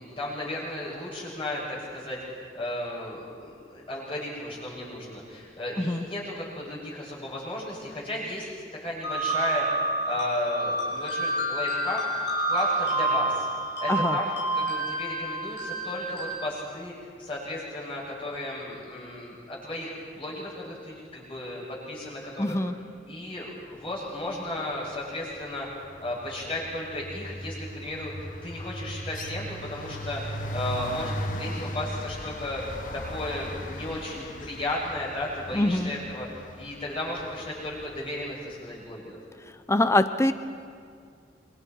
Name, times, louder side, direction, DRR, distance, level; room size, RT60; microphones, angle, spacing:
voice 1, 0.0-8.5 8.8-9.7 10.0-12.0 12.5-13.5 13.8-16.9 17.2-22.5 23.1-32.6 32.9-36.3 36.5-39.2, left 1 dB, 30° left, -5 dB, 7.6 m, -34 dB
sound 1, 9.0-16.3, right 2 dB, 80° left, 5.5 m, -28 dB
voice 2, 22.4-22.7 35.5-35.9 39.7-40.3, left 1 dB, 15° left, 10 dB, 0.7 m, -23 dB
sound 2, 24.5-24.8 25.1-38.3, left 1 dB, 45° left, 1.4 m, -38 dB
27.5 x 26.0 x 4.7 m, 2.2 s
head